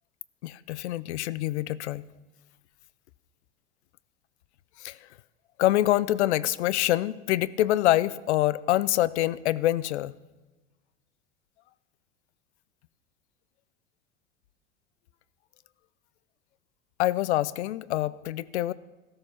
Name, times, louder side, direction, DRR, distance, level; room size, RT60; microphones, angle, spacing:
voice 1, 0.4-2.0 4.8-5.0 5.6-10.1 17.0-18.7, left 15 dB, 80° left, 19 dB, 0.6 m, -25 dB
13.5 x 13.0 x 5.7 m, 1.2 s
hypercardioid pair, 90°, 33 cm